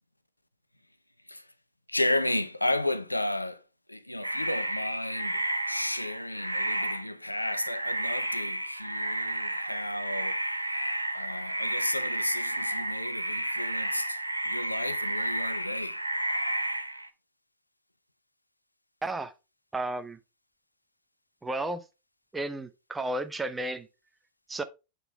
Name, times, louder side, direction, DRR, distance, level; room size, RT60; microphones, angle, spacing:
voice 1, 1.9-3.6 3.9-10.4 11.1-16.0, left 1 dB, 85° left, 0.4 m, -33 dB
sound 1, 4.2-17.1, right 1 dB, 85° right, 0.5 m, -32 dB
voice 2, 19.0-19.3 19.7-20.2 21.4-21.8 22.3-23.9 24.5-24.6, right 2 dB, 10° right, 0.6 m, -32 dB
8.0 x 3.8 x 3.4 m
figure-of-eight pair, 90°, 0 cm